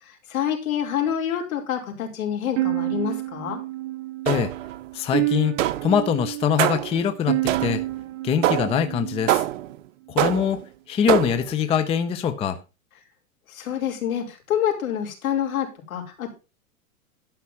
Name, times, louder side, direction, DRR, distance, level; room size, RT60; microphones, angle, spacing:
voice 1, 0.0-3.6 13.5-16.3, left 9 dB, 70° left, 2 dB, 4.7 m, -27 dB
sound 1, 2.6-9.7, right 17 dB, 30° right, 1.1 m, -29 dB
sound 2, 4.3-4.8 5.6-6.0 6.6-7.0 7.5-7.9 8.4-8.8 9.3-9.8 10.2-10.6 11.1-11.5, right 14 dB, 60° right, 0.8 m, -24 dB
voice 2, 4.9-5.6 5.8-7.8 8.2-9.5 10.1-10.6 10.9-12.6, left 8 dB, 15° left, 10 dB, 0.6 m, -23 dB
12.0 x 5.8 x 5.8 m, 0.29 s
hypercardioid pair, 135°, 43 cm